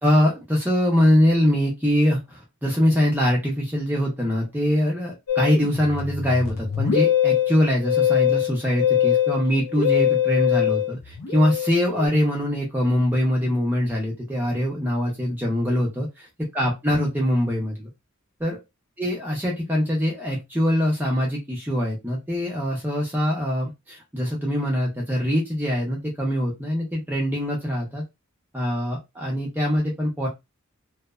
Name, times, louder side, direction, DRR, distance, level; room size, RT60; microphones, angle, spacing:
voice 1, 0.0-16.1 16.5-17.9 18.4-18.6 19.0-28.0 28.5-30.3, equal, 10° right, -3 dB, 0.5 m, -23 dB
Musical instrument, 5.3-12.1, left 10 dB, 80° left, 0.6 m, -23 dB
2.7 x 2.1 x 2.2 m, 0.21 s
head